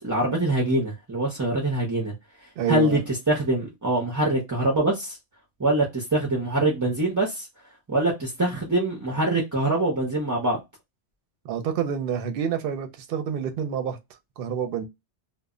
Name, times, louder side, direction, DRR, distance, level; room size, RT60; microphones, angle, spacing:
voice 1, 0.0-2.1 2.7-5.2 5.6-7.5 7.9-10.6, right 1 dB, 25° right, 0.4 m, -24 dB
voice 2, 2.6-3.0 11.4-14.0 14.4-14.8, right 8 dB, 60° right, 0.7 m, -28 dB
2.1 x 2.0 x 3.5 m
omnidirectional pair, 1.2 m